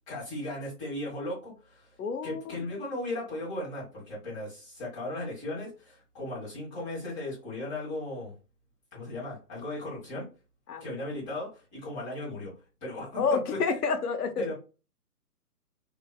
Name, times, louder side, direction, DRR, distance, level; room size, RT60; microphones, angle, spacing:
voice 1, 0.1-1.9 2.2-8.3 8.9-10.3 10.8-12.5 12.8-13.2 13.5-13.6 14.4-14.5, left 1 dB, 20° left, 1.5 m, -36 dB
voice 2, 2.0-2.4 10.7-10.8 13.2-14.5, left 5 dB, 75° left, 0.8 m, -28 dB
3.0 x 2.6 x 2.3 m
hypercardioid pair, 155°, 46 cm